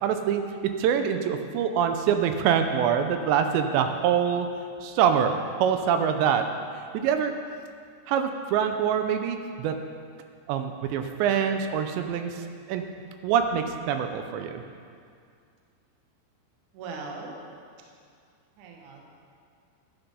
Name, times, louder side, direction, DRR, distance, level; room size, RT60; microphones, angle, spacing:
voice 1, 0.0-0.4 0.8-4.5 4.8-5.3 5.6-6.5 6.9-7.3 8.1-9.8 10.5-12.9 13.2-14.6, right 8 dB, 80° right, 7 dB, 2.8 m, -25 dB
voice 2, 16.7-17.4 18.6-19.0, right 4 dB, 65° right, 0 dB, 2.0 m, -39 dB
12.0 x 10.5 x 5.5 m, 2.3 s
omnidirectional pair, 5.2 m